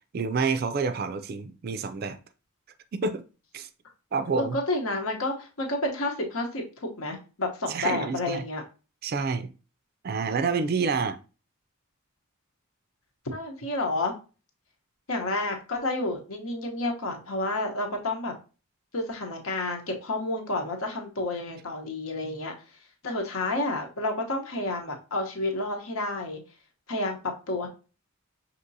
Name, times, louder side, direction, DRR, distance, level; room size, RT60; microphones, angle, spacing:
voice 1, 0.1-2.2 2.9-3.2 3.5-3.7 4.1-4.6 7.7-8.4 9.0-9.5 10.0-11.2, right 4 dB, 45° right, 0.4 m, -28 dB
voice 2, 4.4-8.6 13.3-14.1 15.1-18.3 18.9-22.5 23.0-26.4 26.9-27.7, left 2 dB, 75° left, 1.0 m, -30 dB
5.9 x 2.9 x 2.6 m
head